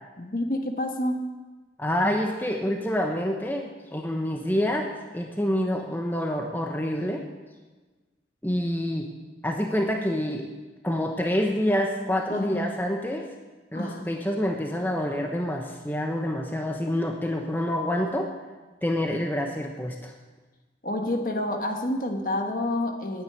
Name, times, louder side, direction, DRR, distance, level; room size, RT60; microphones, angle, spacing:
voice 1, 0.2-1.3 12.3-12.8 13.7-14.1 20.8-23.2, left 1 dB, 50° left, 4 dB, 1.5 m, -28 dB
voice 2, 1.8-7.2 8.4-9.1 9.4-10.5 10.8-13.3 13.7-18.3 18.8-20.1, left 1 dB, 10° left, 2 dB, 0.9 m, -27 dB
10.5 x 9.0 x 9.6 m, 1.3 s
head